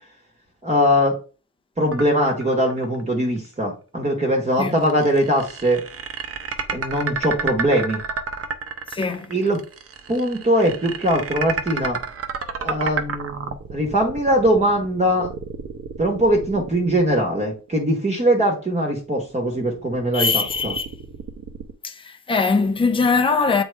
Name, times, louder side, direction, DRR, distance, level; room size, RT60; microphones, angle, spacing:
voice 1, 0.6-1.2 1.8-5.8 6.7-8.0 9.3-9.6 10.1-12.0 12.6-15.3 16.0-20.7, equal, 20° right, 1.2 m, -21 dB
sound 1, 1.9-3.0 3.4-3.5 4.7-17.7 18.9-21.7, right 5 dB, 45° right, 0.8 m, -31 dB
voice 2, 8.9-9.3 20.1-20.9 21.8-23.6, left 4 dB, 15° left, 0.7 m, -21 dB
7.8 x 4.4 x 3.4 m
cardioid pair, 140°, 33 cm